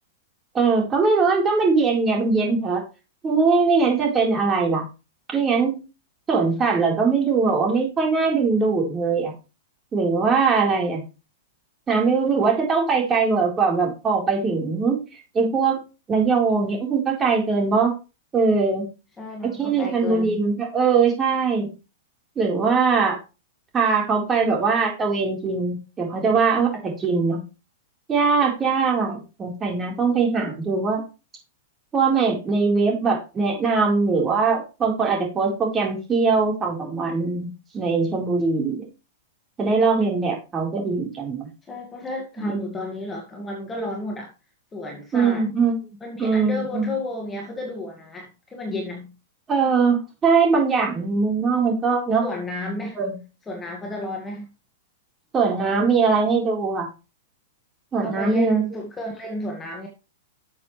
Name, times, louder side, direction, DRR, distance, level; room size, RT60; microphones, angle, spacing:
voice 1, 0.5-2.8 3.2-4.9 5.3-5.8 6.3-9.3 9.9-11.0 11.9-15.0 15.3-15.8 16.1-17.9 18.3-18.9 19.4-21.7 22.4-23.2 23.7-27.4 28.1-31.0 31.9-37.5 37.7-38.9 39.6-41.5 42.4-42.7 45.1-45.8 46.2-46.9 49.5-52.2 52.9-53.1 55.3-56.9 57.9-58.6, right 4 dB, 20° right, 4.3 m, -21 dB
voice 2, 19.2-20.5 41.6-44.3 44.7-45.5 46.0-49.1 52.2-53.0 53.5-54.5 58.0-59.9, left 1 dB, 15° left, 2.0 m, -32 dB
11.5 x 7.2 x 3.3 m
hypercardioid pair, 130°, 0 cm